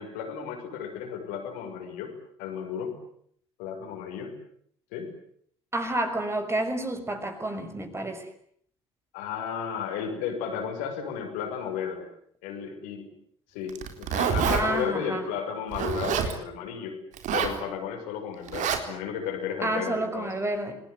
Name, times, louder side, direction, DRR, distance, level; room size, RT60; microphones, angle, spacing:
voice 1, 0.0-3.0 3.6-4.3 4.9-5.1 9.1-12.1 12.4-13.1 13.5-17.0 17.3-20.3, left 7 dB, 70° left, 3 dB, 6.2 m, -34 dB
voice 2, 5.7-8.3 14.4-15.3 19.6-20.8, right 1 dB, 20° right, 6 dB, 6.1 m, -30 dB
Zipper (clothing), 13.7-14.6 15.7-16.3 17.1-17.6 18.5-18.8, right 7 dB, 60° right, 3.9 m, -26 dB
28.0 x 20.0 x 9.6 m, 0.66 s
figure-of-eight pair, 50°, 14 cm